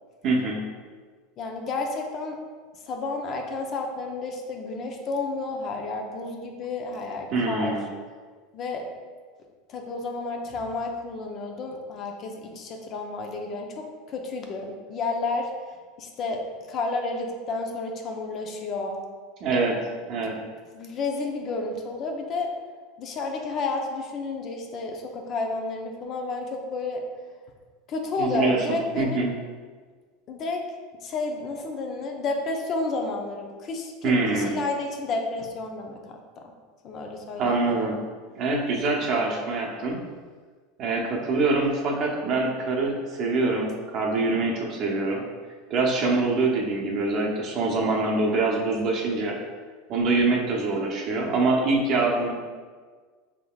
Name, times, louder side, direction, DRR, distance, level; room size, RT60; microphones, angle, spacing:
voice 1, 0.2-0.6 7.3-7.8 19.4-19.8 20.1-20.4 28.2-29.3 34.0-34.5 37.4-37.9 38.4-40.0 40.8-45.2 45.7-49.4 49.9-52.3, right 3 dB, 50° right, -1 dB, 0.8 m, -24 dB
voice 2, 1.4-2.4 2.7-7.8 8.5-8.9 9.7-15.5 16.0-16.4 16.7-19.0 20.2-20.4 20.7-22.5 23.0-27.0 27.9-29.3 30.3-30.6 31.0-36.5 36.8-37.8, left 3 dB, 45° left, 2 dB, 0.6 m, -31 dB
4.6 x 3.6 x 2.3 m, 1.5 s
supercardioid pair, 105°, 0 cm